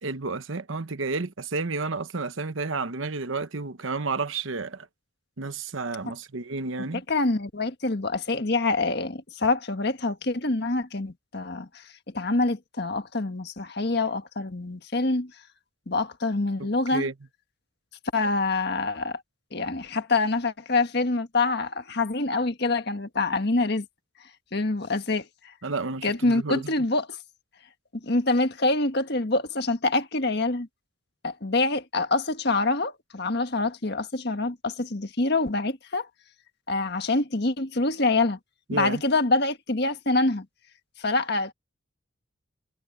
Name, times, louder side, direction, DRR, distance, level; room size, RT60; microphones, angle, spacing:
voice 1, 0.0-4.9 5.4-7.0 16.6-17.1 25.6-26.7 38.7-39.0, right 3 dB, 70° right, 1.1 m, -31 dB
voice 2, 7.1-11.7 12.1-15.3 15.9-17.1 18.1-19.2 19.5-23.8 24.5-25.2 26.0-27.1 28.0-30.7 31.2-36.1 36.7-38.4 38.7-40.4 41.0-41.5, left 3 dB, 50° left, 1.6 m, -25 dB
head